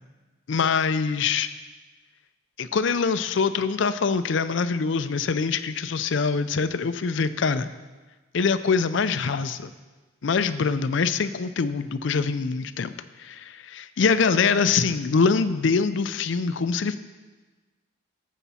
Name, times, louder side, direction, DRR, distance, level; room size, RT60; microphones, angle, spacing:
voice 1, 0.5-1.5 2.6-7.7 8.3-9.7 10.2-12.9 13.2-16.9, left 5 dB, 65° left, 13 dB, 0.4 m, -24 dB
12.5 x 7.2 x 4.2 m, 1.3 s
head